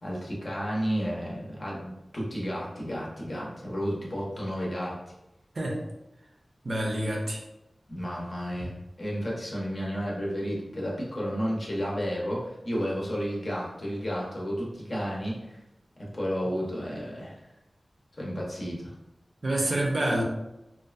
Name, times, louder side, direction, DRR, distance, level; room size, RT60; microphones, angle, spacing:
voice 1, 0.0-5.0 7.9-15.6 16.0-17.4 18.2-18.9, equal, 45° left, -4 dB, 0.7 m, -32 dB
voice 2, 6.6-7.4 8.6-8.7 19.4-20.2, right 1 dB, 60° right, -1 dB, 0.5 m, -27 dB
2.6 x 2.3 x 2.3 m, 0.93 s
wide cardioid pair, 85°, 0 cm